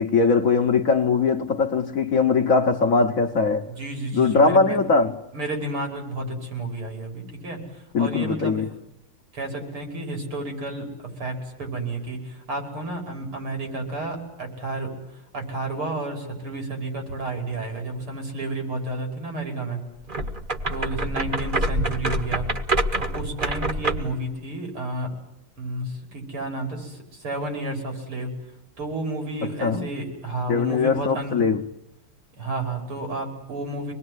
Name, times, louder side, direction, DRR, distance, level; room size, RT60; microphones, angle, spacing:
voice 1, 0.0-3.7 4.1-5.1 7.9-8.7 29.6-29.9 30.5-31.6, left 4 dB, 45° left, 1.3 m, -20 dB
voice 2, 3.8-4.8 5.3-7.6 8.0-8.6 9.3-10.9 11.2-14.9 15.3-19.8 20.7-22.5 23.0-25.1 25.6-28.3 28.8-31.3 32.4-33.9, right 2 dB, 90° right, 6.4 m, -31 dB
sound 1, 20.1-24.2, right 1 dB, 30° right, 1.2 m, -26 dB
25.0 x 20.5 x 9.7 m
omnidirectional pair, 2.3 m